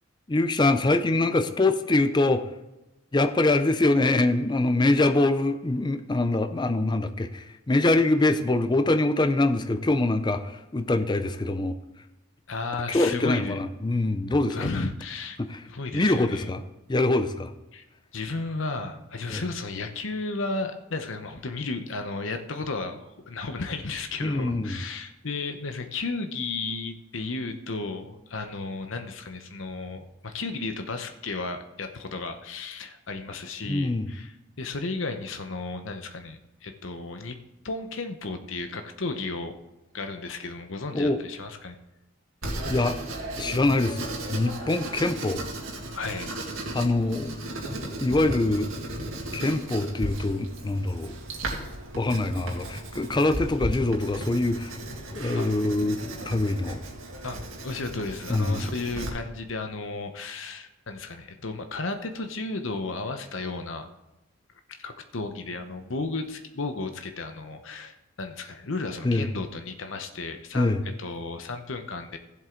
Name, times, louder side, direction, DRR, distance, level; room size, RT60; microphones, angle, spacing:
voice 1, 0.3-2.5 3.1-11.7 12.9-14.9 15.4-15.6 15.9-16.6 16.9-17.5 19.3-19.4 24.2-24.8 33.6-34.1 40.9-41.2 42.7-43.0 43.4-45.4 46.7-47.3 48.0-48.7 49.3-51.1 52.0-54.8 55.1-56.8 58.3-58.7 69.0-69.3 70.5-70.8, left 2 dB, 20° left, 9 dB, 0.5 m, -24 dB
voice 2, 12.5-13.5 14.5-15.4 15.7-16.5 17.7-17.8 18.1-37.4 37.6-39.5 39.9-41.8 45.9-46.3 55.3-55.5 57.2-57.4 57.6-63.9 64.7-70.7 71.0-72.2, left 3 dB, 70° left, 7 dB, 0.9 m, -34 dB
Writing, 42.4-59.1, right 1 dB, 75° right, 2.2 m, -35 dB
15.5 x 7.7 x 3.8 m, 0.99 s
head